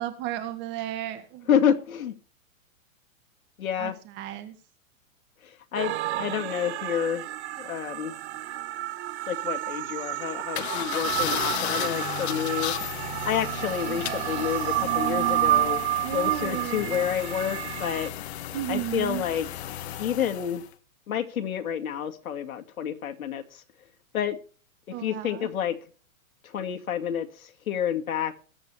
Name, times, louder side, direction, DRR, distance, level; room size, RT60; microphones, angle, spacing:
voice 1, 0.0-1.5 3.8-4.6 14.1-14.3 16.0-17.1 18.5-19.2 24.9-25.5, right 13 dB, 25° right, 1.9 m, -34 dB
voice 2, 1.5-2.2 3.6-3.9 5.4-7.2 7.6-8.1 9.3-12.7 13.2-15.8 16.1-18.1 18.7-19.5 20.0-20.6 21.1-23.6 24.1-24.4 25.0-25.8 26.4-28.4, left 9 dB, 90° left, 2.1 m, -29 dB
sound 1, 5.7-18.1, right 15 dB, 50° right, 1.0 m, -30 dB
sound 2, 10.5-20.7, left 12 dB, 50° left, 1.4 m, -34 dB
21.5 x 8.3 x 3.3 m
hypercardioid pair, 155°, 41 cm